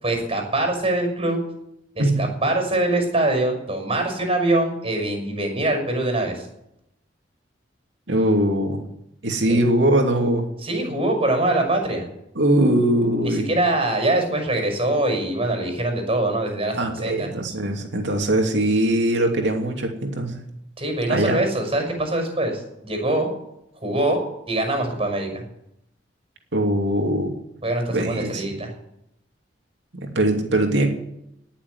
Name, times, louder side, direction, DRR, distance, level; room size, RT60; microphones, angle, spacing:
voice 1, 0.0-1.4 1.9-6.5 9.5-9.6 10.6-12.1 13.2-17.3 20.8-23.3 23.8-24.2 24.5-25.4 27.6-28.7, right 2 dB, 30° right, 4 dB, 6.0 m, -23 dB
voice 2, 8.1-8.8 9.2-10.5 12.4-13.5 16.7-20.4 21.1-21.4 26.5-27.3 27.9-28.4 29.9-30.9, right 1 dB, 70° right, 2 dB, 2.8 m, -21 dB
18.5 x 7.3 x 9.6 m, 0.81 s
head